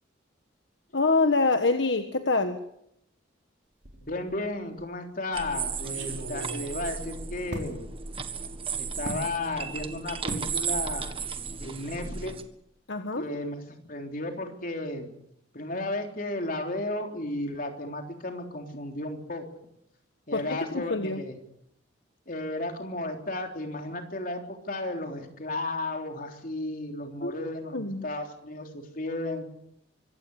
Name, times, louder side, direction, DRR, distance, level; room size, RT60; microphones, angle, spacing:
voice 1, 0.9-2.6 12.9-13.2 20.3-21.2 27.2-27.3 27.7-28.0, left 3 dB, 70° left, 7 dB, 1.5 m, -25 dB
sound 1, 3.8-4.4 4.8-4.9 5.7-7.7 9.0-9.3 10.3-10.5 10.9-11.2 11.5-11.6, equal, 70° right, 4.1 m, -38 dB
voice 2, 4.0-7.9 8.8-11.1 11.6-12.4 13.2-13.6 13.9-15.1 15.5-19.5 20.3-21.4 22.3-29.4, left 2 dB, 50° left, 4 dB, 3.6 m, -34 dB
sound 2, 5.3-12.4, right 6 dB, 30° right, 1.6 m, -35 dB
25.0 x 15.5 x 8.3 m, 0.76 s
head